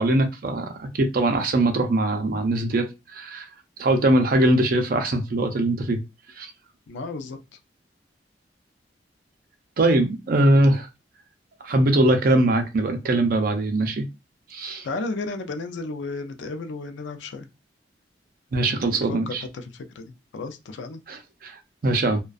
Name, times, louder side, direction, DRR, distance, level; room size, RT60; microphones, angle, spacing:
voice 1, 0.0-3.5 3.8-6.0 6.4-6.5 9.8-10.9 11.6-14.0 14.5-14.9 18.5-19.4 21.1-22.2, right 1 dB, 50° right, 0.4 m, -22 dB
voice 2, 6.9-7.4 14.8-17.5 18.9-21.0, left 3 dB, 85° left, 0.4 m, -33 dB
2.4 x 2.2 x 2.3 m
head